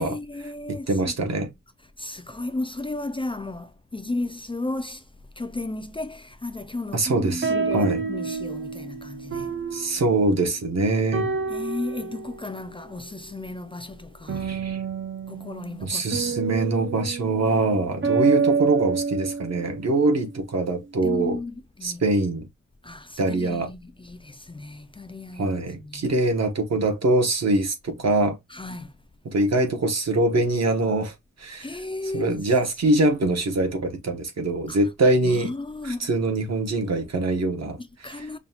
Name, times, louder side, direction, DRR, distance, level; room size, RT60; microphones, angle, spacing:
voice 1, 0.0-1.5 2.0-5.1 5.4-9.5 11.5-14.5 15.3-16.5 21.0-22.0 22.8-26.1 28.5-28.9 31.6-32.4 34.7-34.8 35.2-36.1 37.8-38.4, left 2 dB, 20° left, 0.3 m, -34 dB
voice 2, 0.7-1.5 6.9-8.0 9.7-11.3 14.4-14.8 15.8-21.4 21.8-22.5 23.2-23.7 25.4-28.4 29.2-31.1 31.4-31.7 32.1-35.5 35.8-37.8 38.2-38.3, right 2 dB, 60° right, 1.1 m, -23 dB
sound 1, 7.1-10.8 11.1-12.5 14.3-20.1, right 5 dB, 40° right, 0.5 m, -28 dB
5.5 x 2.3 x 2.8 m
wide cardioid pair, 155°, 30 cm